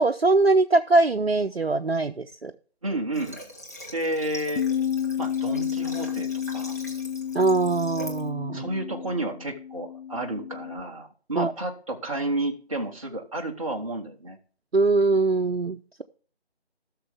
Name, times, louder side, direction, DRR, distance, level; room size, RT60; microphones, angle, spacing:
voice 1, 0.0-2.5 7.3-8.7 11.3-11.5 14.7-16.0, right 3 dB, 70° right, 5 dB, 0.7 m, -22 dB
voice 2, 2.8-3.4 3.9-4.7 5.2-6.8 8.5-14.4, right 1 dB, 30° right, 1 dB, 1.1 m, -31 dB
Water / Water tap faucet, 3.1-8.3, left 1 dB, 15° left, 0.8 m, -43 dB
Bass guitar, 4.6-10.8, left 9 dB, 65° left, 0.6 m, -31 dB
16.0 x 6.5 x 3.5 m, 0.41 s
figure-of-eight pair, 160°, 33 cm